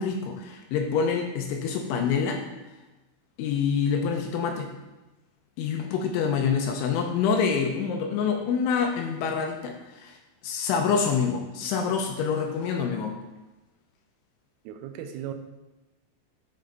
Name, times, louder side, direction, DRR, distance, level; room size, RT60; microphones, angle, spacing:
voice 1, 0.0-2.4 3.4-4.7 5.6-10.2 10.4-13.2, left 6 dB, 85° left, 3 dB, 2.9 m, -26 dB
voice 2, 14.6-15.3, right 10 dB, 85° right, 6 dB, 3.3 m, -36 dB
8.6 x 5.6 x 3.9 m, 1.1 s
omnidirectional pair, 5.8 m